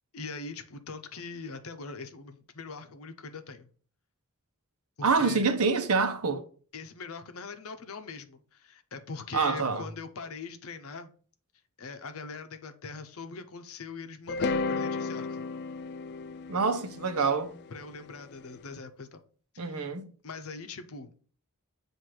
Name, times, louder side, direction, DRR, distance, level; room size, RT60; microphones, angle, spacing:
voice 1, 0.1-3.7 5.0-5.5 6.7-11.1 11.8-15.4 17.7-19.2 19.5-19.8 20.2-21.1, left 4 dB, 70° left, 0.7 m, -42 dB
voice 2, 5.0-6.4 9.3-9.8 16.5-17.5 19.6-20.1, right 4 dB, 75° right, 0.8 m, -26 dB
sound 1, 14.3-18.4, left 4 dB, 50° left, 0.3 m, -33 dB
7.6 x 2.6 x 4.7 m
head